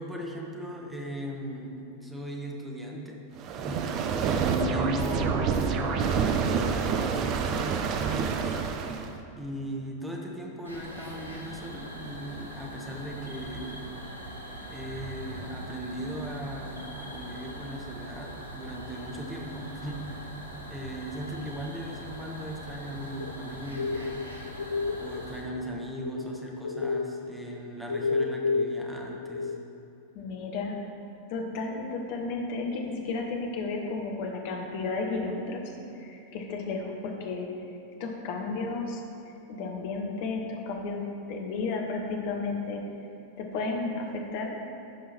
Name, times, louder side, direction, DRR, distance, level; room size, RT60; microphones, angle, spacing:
voice 1, 0.0-3.2 3.6-8.7 9.3-13.9 14.7-20.3 20.7-24.3 25.0-29.5, right 1 dB, 5° right, -1 dB, 1.4 m, -38 dB
sound 1, 3.4-9.2, right 6 dB, 35° right, 0.6 m, -28 dB
sound 2, 10.6-25.4, right 1 dB, 80° right, 1.2 m, -42 dB
sound 3, 23.2-26.4 26.6-29.6, left 4 dB, 70° left, 0.4 m, -30 dB
voice 2, 30.1-30.8 31.3-37.5 38.0-39.0 39.5-41.0 41.3-42.8 43.4-44.5, left 3 dB, 45° left, 1 dB, 1.4 m, -33 dB
14.5 x 5.4 x 4.4 m, 2.8 s
figure-of-eight pair, 90°, 0 cm